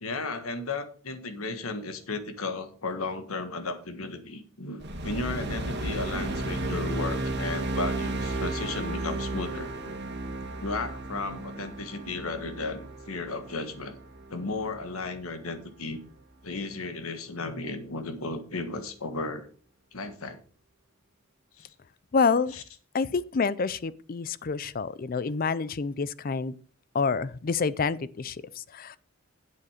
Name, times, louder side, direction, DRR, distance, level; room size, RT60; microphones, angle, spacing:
voice 1, 0.0-10.0 10.6-14.0 14.3-16.0 16.4-19.5 19.9-20.4 21.6-21.7 22.5-22.6, left 3 dB, 85° left, 1.4 m, -34 dB
sound 1, 4.8-15.3, right 2 dB, 50° right, 1.8 m, -34 dB
voice 2, 22.1-22.5 22.9-26.6 26.9-29.0, left 5 dB, 40° left, 0.4 m, -28 dB
8.5 x 7.8 x 5.0 m
head